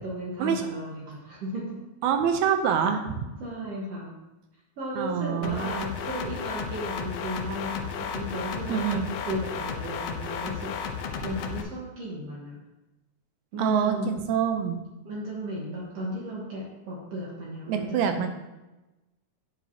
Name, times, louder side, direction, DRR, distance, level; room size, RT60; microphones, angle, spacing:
voice 1, 0.0-1.8 3.4-4.2 4.8-10.7 11.2-12.6 13.5-14.1 15.0-18.3, equal, 60° right, -4 dB, 2.2 m, -35 dB
voice 2, 2.0-3.3 5.0-5.8 8.7-9.1 13.6-14.8 17.7-18.3, right 7 dB, 80° right, 6 dB, 1.9 m, -25 dB
sound 1, 5.4-11.6, left 6 dB, 75° left, 1.4 m, -33 dB
9.1 x 7.1 x 2.8 m, 1.0 s
omnidirectional pair, 3.4 m